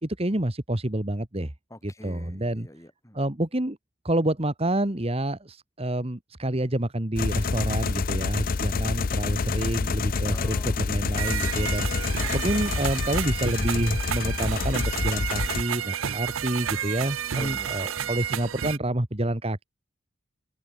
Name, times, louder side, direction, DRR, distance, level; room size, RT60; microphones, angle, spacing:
voice 1, 0.0-1.5 1.8-2.7 3.1-3.8 4.0-11.9 12.3-19.6, right 1 dB, 30° right, 1.7 m, -28 dB
voice 2, 1.7-3.2 10.2-10.8 11.6-12.0 17.3-18.1, left 1 dB, 15° left, 8.0 m, -44 dB
sound 1, 7.2-15.6, left 4 dB, 45° left, 0.5 m, -27 dB
sound 2, 11.2-18.8, right 9 dB, 75° right, 0.7 m, -31 dB
head